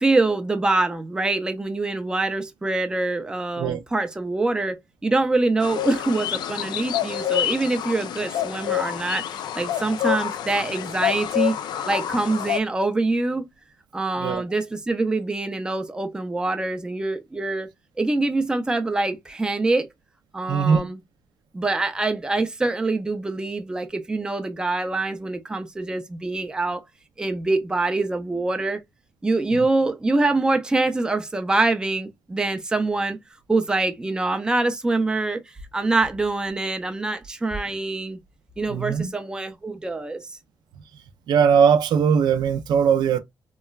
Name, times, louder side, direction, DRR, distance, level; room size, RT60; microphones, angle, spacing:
voice 1, 0.0-11.6 11.9-13.4 13.9-17.7 18.0-19.9 20.3-21.0 21.5-26.8 27.2-28.8 29.2-33.2 33.5-38.2 38.6-40.3, right 2 dB, 10° right, 0.4 m, -24 dB
sound 1, 5.6-12.6, left 12 dB, 85° left, 0.3 m, -27 dB
voice 2, 20.5-20.8 29.5-29.6 38.7-39.1 41.3-43.2, right 7 dB, 80° right, 0.4 m, -20 dB
3.0 x 2.2 x 2.3 m
cardioid pair, 135°, 7 cm